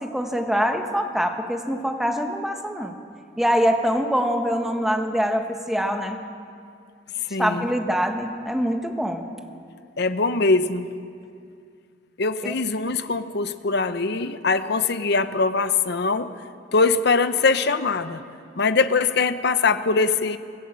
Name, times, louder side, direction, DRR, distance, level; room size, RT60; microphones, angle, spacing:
voice 1, 0.0-2.9 3.4-6.2 7.4-9.2 12.4-12.5, equal, ahead, 4 dB, 1.5 m, -24 dB
voice 2, 7.3-7.6 10.0-10.9 12.2-16.3 16.7-18.2 18.6-20.4, left 4 dB, 60° left, 11 dB, 0.8 m, -22 dB
25.0 x 16.0 x 7.6 m, 2.4 s
head